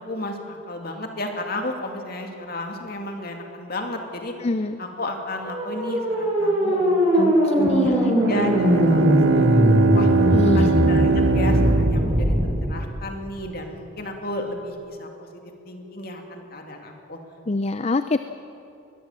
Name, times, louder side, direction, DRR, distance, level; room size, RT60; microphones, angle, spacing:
voice 1, 0.0-4.3 4.8-7.5 7.8-10.1 10.5-12.3 12.7-15.3 15.6-17.2, left 1 dB, 45° left, 3 dB, 2.6 m, -33 dB
voice 2, 4.4-4.8 7.1-8.2 10.3-10.7 17.5-18.2, left 2 dB, 30° left, 11 dB, 0.5 m, -25 dB
sound 1, 5.4-12.5, equal, 30° right, 7.5 m, -20 dB
Bowed string instrument, 8.2-12.8, right 4 dB, 80° right, 0.6 m, -22 dB
21.5 x 21.0 x 7.4 m, 2.7 s
head